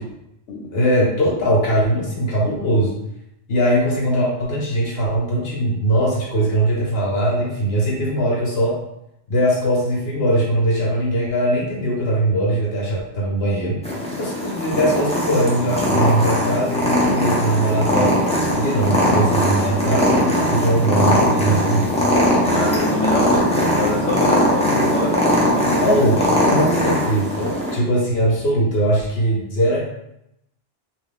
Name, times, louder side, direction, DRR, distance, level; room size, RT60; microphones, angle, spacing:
voice 1, 0.7-2.9 3.5-8.8 9.3-13.8 14.2-18.2 18.6-22.2 25.8-26.2 26.5-29.8, right 1 dB, 60° left, -4 dB, 1.0 m, -20 dB
Purr, 13.8-27.8, equal, 10° left, 0.3 m, -20 dB
voice 2, 22.4-26.3, left 2 dB, 85° left, -2 dB, 0.9 m, -26 dB
2.4 x 2.3 x 3.6 m, 0.82 s
omnidirectional pair, 1.2 m